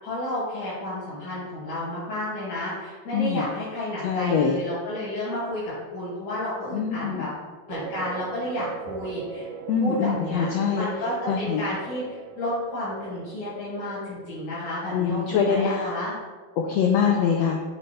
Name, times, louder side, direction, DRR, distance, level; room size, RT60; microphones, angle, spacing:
voice 1, 0.0-5.6 5.9-7.3 7.7-9.5 9.8-10.5 10.8-16.2, left 1 dB, 65° left, -12 dB, 4.0 m, -31 dB
voice 2, 3.1-3.4 4.0-4.6 6.7-7.3 9.7-10.9 11.3-11.6 14.9-15.9 16.6-17.6, left 6 dB, 80° left, 2 dB, 1.5 m, -24 dB
sound 1, 7.7-15.1, right 6 dB, 80° right, 2.3 m, -40 dB
6.9 x 6.4 x 5.5 m, 1.4 s
omnidirectional pair, 3.8 m